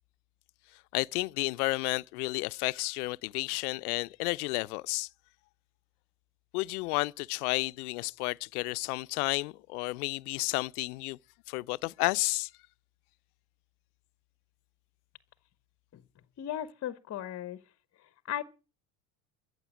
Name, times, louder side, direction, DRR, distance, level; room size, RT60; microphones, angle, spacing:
voice 1, 0.9-5.1 6.5-11.2 11.5-12.5, left 24 dB, 75° left, 0.6 m, -31 dB
voice 2, 16.4-17.6 18.0-18.4, left 11 dB, 35° left, 0.9 m, -37 dB
14.5 x 7.9 x 8.4 m
hypercardioid pair, 80°, 45 cm